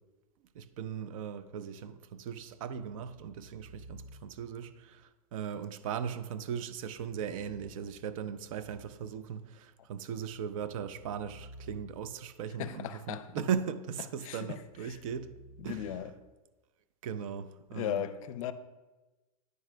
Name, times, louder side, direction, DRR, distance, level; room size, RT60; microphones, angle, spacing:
voice 1, 0.5-15.3 15.6-15.9 17.0-18.1, right 7 dB, 60° right, 0.5 m, -38 dB
sound 1, 2.3-4.6 6.7-9.3 9.9-12.4 14.5-16.0, right 1 dB, 35° right, 1.2 m, -54 dB
voice 2, 12.6-13.3 14.2-14.6 14.9-15.0 15.6-16.1 17.7-18.5, left 11 dB, 60° left, 0.5 m, -37 dB
9.3 x 5.9 x 2.2 m
supercardioid pair, 150°, 20 cm